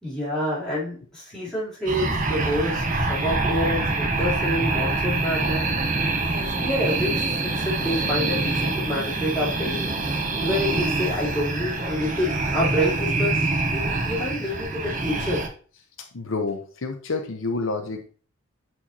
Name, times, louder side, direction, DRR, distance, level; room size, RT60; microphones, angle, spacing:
voice 1, 0.0-5.7 6.3-9.9 10.4-15.4, left 1 dB, 5° left, -9 dB, 3.2 m, -28 dB
sound 1, 1.9-15.5, right 3 dB, 35° right, 0.9 m, -25 dB
voice 2, 16.1-18.1, left 3 dB, 70° left, 5 dB, 0.8 m, -28 dB
8.0 x 4.5 x 2.8 m, 0.40 s
head